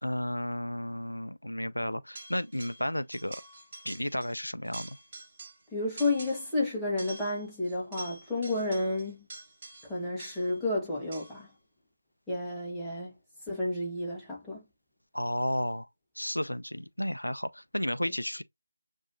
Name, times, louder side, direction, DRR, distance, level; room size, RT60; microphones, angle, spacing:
voice 1, 0.0-3.4 3.8-5.0 15.1-15.9 16.2-18.4, left 1 dB, 80° left, 0.4 m, -33 dB
sound 1, 2.2-2.9 3.1-4.4 4.6-5.7 6.0-6.6 7.0-10.6 11.1-11.5, right 2 dB, 25° right, 1.9 m, -47 dB
voice 2, 5.7-9.3 9.8-11.5 12.3-13.1 13.5-14.6 18.0-18.1, left 2 dB, ahead, 1.1 m, -31 dB
6.9 x 2.7 x 2.5 m
figure-of-eight pair, 160°, 0 cm